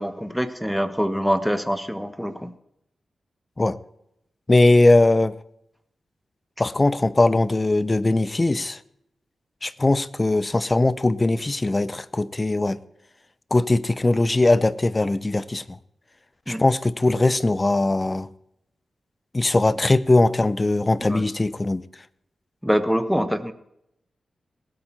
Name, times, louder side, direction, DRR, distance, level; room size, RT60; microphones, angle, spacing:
voice 1, 0.0-2.5 16.5-16.6 21.0-21.3 22.6-23.5, equal, ahead, 1.2 m, -24 dB
voice 2, 4.5-5.4 6.6-8.8 9.6-12.8 13.5-15.6 16.5-18.3 19.3-21.8, left 2 dB, 30° left, 0.7 m, -20 dB
19.5 x 8.8 x 4.5 m
cardioid pair, 55°, 0 cm